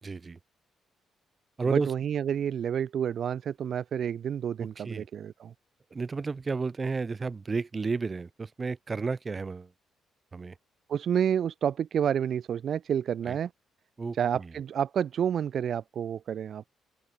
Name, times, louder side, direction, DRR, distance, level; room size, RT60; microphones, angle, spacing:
voice 1, 0.0-0.4 1.6-1.9 4.8-5.1 5.9-9.7 10.3-10.5 13.3-13.4 14.0-14.5, right 4 dB, 30° right, 3.8 m, -32 dB
voice 2, 1.7-5.5 10.9-13.5 14.1-16.6, right 8 dB, 60° right, 0.6 m, -29 dB
open air
cardioid pair, 90°, 0 cm